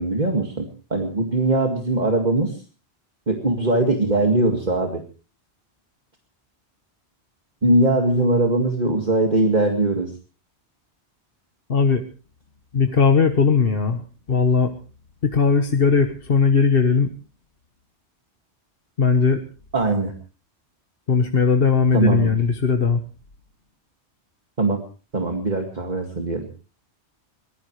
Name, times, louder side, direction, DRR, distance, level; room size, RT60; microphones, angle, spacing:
voice 1, 0.0-2.6 3.3-5.0 7.6-10.1 19.7-20.1 21.9-22.3 24.6-24.8 25.1-26.5, right 2 dB, 40° right, 2 dB, 2.2 m, -21 dB
voice 2, 11.7-12.0 12.7-14.7 15.2-17.1 19.0-19.4 21.1-23.0, left 5 dB, 55° left, 6 dB, 1.4 m, -18 dB
23.5 x 19.0 x 3.2 m, 0.37 s
omnidirectional pair, 1.1 m